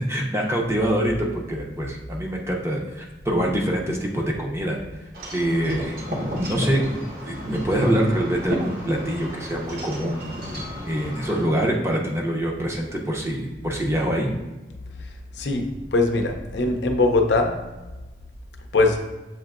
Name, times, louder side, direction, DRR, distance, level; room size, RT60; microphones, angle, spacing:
voice 1, 0.0-4.8 5.3-6.0 6.3-7.0 7.2-10.2 10.8-14.3, right 1 dB, 15° right, -1 dB, 0.6 m, -25 dB
Wind chime / Wind, 5.1-11.4, equal, 55° right, 0.9 m, -32 dB
voice 2, 15.4-17.6 18.7-19.0, left 2 dB, 80° left, 4 dB, 0.6 m, -21 dB
7.4 x 2.7 x 2.4 m, 1.1 s
head